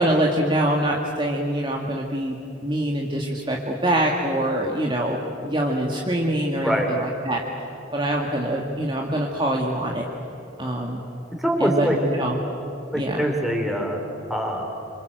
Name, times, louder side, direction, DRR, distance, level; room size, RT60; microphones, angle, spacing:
voice 1, 0.0-2.4 2.6-7.4 7.9-10.0 10.6-11.1 11.6-12.4 12.9-13.2, right 1 dB, 25° right, -1 dB, 2.0 m, -24 dB
voice 2, 11.4-12.0 12.9-14.0 14.3-14.7, equal, ahead, 1 dB, 4.0 m, -23 dB
26.5 x 26.5 x 7.9 m, 2.9 s
head